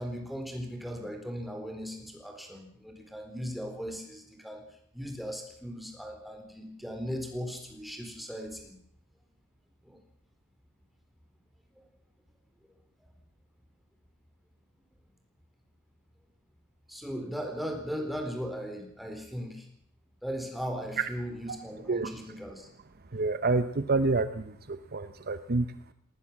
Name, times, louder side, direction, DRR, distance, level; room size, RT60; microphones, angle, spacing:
voice 1, 0.0-4.6 4.9-8.7 9.8-10.0 13.0-13.1 16.9-19.7 20.2-22.7, equal, ahead, 3 dB, 4.2 m, -38 dB
voice 2, 23.1-25.7, right 3 dB, 45° right, 11 dB, 0.9 m, -28 dB
19.5 x 19.0 x 7.3 m, 0.68 s
head